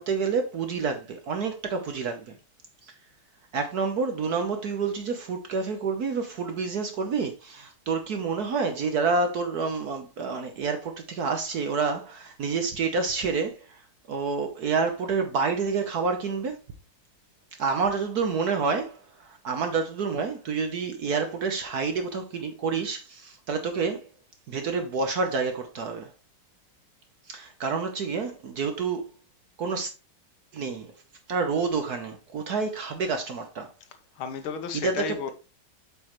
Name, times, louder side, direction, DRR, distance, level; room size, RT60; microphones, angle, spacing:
voice 1, 0.0-2.4 3.5-13.8 14.1-16.6 17.6-24.1 24.5-26.1 27.3-29.1 29.6-29.9 30.5-30.9 31.3-33.7 34.8-35.3, right 4 dB, 60° right, 1.1 m, -28 dB
voice 2, 33.9-35.3, left 7 dB, 75° left, 1.7 m, -33 dB
8.3 x 5.4 x 3.0 m
omnidirectional pair, 2.4 m